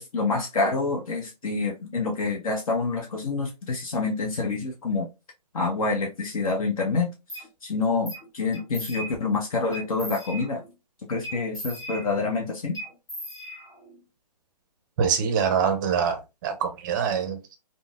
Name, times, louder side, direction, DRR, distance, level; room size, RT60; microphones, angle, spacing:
voice 1, 0.0-5.1 5.5-7.1 7.3-10.6 11.1-12.8, left 3 dB, 55° left, 0.7 m, -27 dB
sound 1, 7.3-7.5 8.1-8.3 8.5-9.3 9.7-10.7 11.2-12.4 12.7-14.0, right 1 dB, 15° left, 1.6 m, -38 dB
voice 2, 15.0-17.6, right 7 dB, 30° right, 0.5 m, -25 dB
3.6 x 2.0 x 2.3 m
hypercardioid pair, 140°, 21 cm